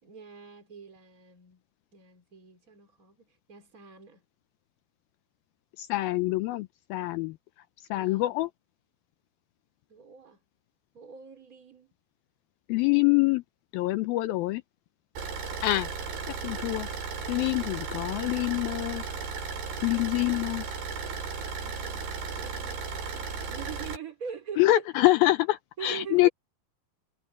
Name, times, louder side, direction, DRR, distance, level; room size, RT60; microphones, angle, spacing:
voice 1, 0.0-1.6 1.9-4.2 7.9-8.4 9.9-10.4 10.9-11.9 16.2-16.6 18.1-18.4 21.6-22.1 22.4-24.8 25.8-26.3, right 6 dB, 20° right, 3.6 m, -43 dB
voice 2, 5.8-7.4 7.9-8.5 12.7-13.4 13.7-14.6 15.6-15.9 16.3-16.9 17.3-19.0 19.8-20.7 24.6-26.3, left 18 dB, 80° left, 2.2 m, -25 dB
Car / Idling, 15.2-24.0, right 5 dB, 80° right, 8.9 m, -35 dB
omnidirectional pair, 4.8 m